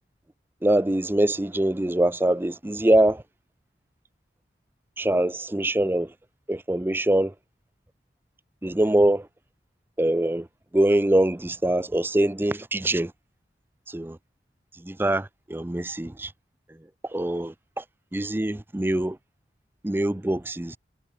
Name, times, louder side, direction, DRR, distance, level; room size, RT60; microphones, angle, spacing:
voice 1, 0.6-3.2 5.0-6.1 6.5-7.3 8.6-9.3 10.0-10.5 10.7-13.1 13.9-14.2 14.8-16.3 17.0-17.8 18.1-19.2 19.8-20.8, right 1 dB, 10° right, 0.5 m, -23 dB
head